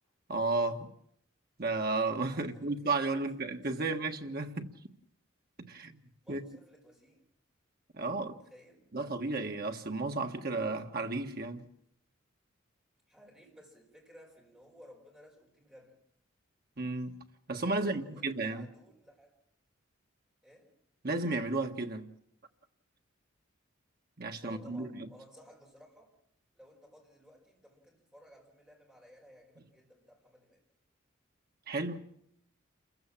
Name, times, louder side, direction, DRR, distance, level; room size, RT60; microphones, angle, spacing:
voice 1, 0.3-0.9 1.6-4.7 5.7-6.0 6.3-6.4 7.9-8.4 8.9-11.6 16.8-17.2 17.5-18.7 21.0-22.1 24.2-25.1 31.7-32.1, right 3 dB, 50° right, 1.5 m, -33 dB
voice 2, 2.3-3.5 3.8-3.9 6.2-7.3 8.2-8.9 13.1-16.0 17.7-19.3 20.4-20.7 24.4-26.1 26.5-30.6, equal, 5° right, 5.1 m, -57 dB
28.0 x 15.5 x 7.3 m
head